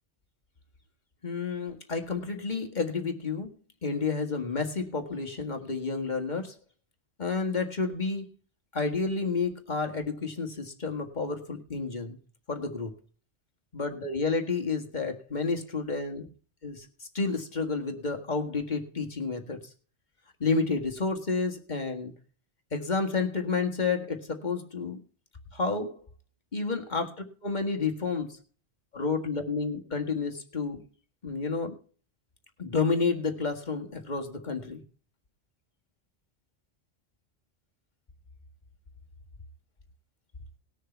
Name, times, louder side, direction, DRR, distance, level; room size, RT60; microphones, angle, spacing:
voice 1, 1.2-3.5 3.8-6.5 7.2-8.2 8.7-12.2 12.5-12.9 13.7-16.3 16.6-16.9 17.2-19.6 20.4-22.1 22.7-25.0 25.5-26.0 26.5-27.1 27.4-28.3 28.9-30.8 31.2-31.7 32.6-34.8, left 4 dB, 40° left, 3 dB, 1.9 m, -30 dB
19.5 x 6.6 x 4.5 m, 0.40 s
omnidirectional pair, 1.2 m